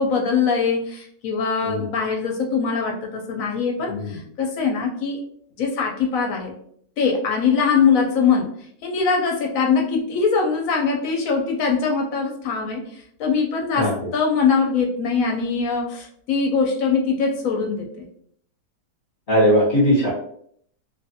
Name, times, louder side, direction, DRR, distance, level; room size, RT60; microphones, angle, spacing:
voice 1, 0.0-5.2 5.6-6.5 7.0-8.5 8.8-12.8 13.2-18.1, left 5 dB, 70° left, 1 dB, 0.9 m, -22 dB
voice 2, 3.9-4.2 13.8-13.9 19.3-20.1, equal, 40° left, -7 dB, 0.8 m, -19 dB
2.5 x 2.4 x 2.7 m, 0.64 s
omnidirectional pair, 1.8 m